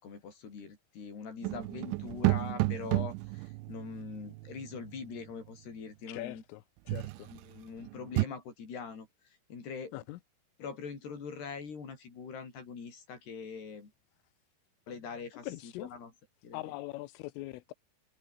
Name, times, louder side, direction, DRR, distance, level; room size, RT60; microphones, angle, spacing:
voice 1, 0.0-6.4 7.3-9.1 9.5-10.0 10.6-13.9 14.9-16.1 16.4-16.8, left 5 dB, 55° left, 7.7 m, -43 dB
sound 1, 1.4-5.2 6.9-7.4 7.8-8.3, right 22 dB, 85° right, 2.7 m, -32 dB
voice 2, 6.1-7.3 9.9-10.2 15.4-15.9 16.5-17.7, left 18 dB, 85° left, 3.5 m, -42 dB
omnidirectional pair, 5.8 m